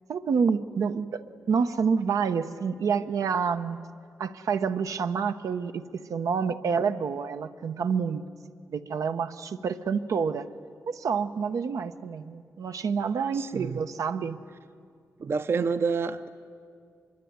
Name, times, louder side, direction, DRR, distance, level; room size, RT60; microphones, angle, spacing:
voice 1, 0.1-3.8 4.2-8.2 8.7-10.5 10.9-14.4, right 6 dB, 90° right, 0.9 m, -28 dB
voice 2, 13.3-13.8 15.2-16.3, right 5 dB, 45° right, 0.6 m, -28 dB
25.0 x 22.5 x 9.5 m
wide cardioid pair, 160°, 6 cm